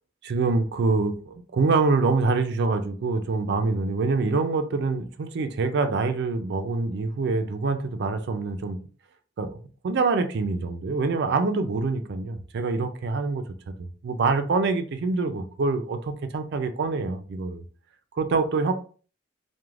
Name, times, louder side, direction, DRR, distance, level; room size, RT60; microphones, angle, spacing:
voice 1, 0.2-8.8 9.4-17.6 18.1-18.7, right 3 dB, 60° right, 7 dB, 0.4 m, -25 dB
2.4 x 2.1 x 3.1 m, 0.40 s
head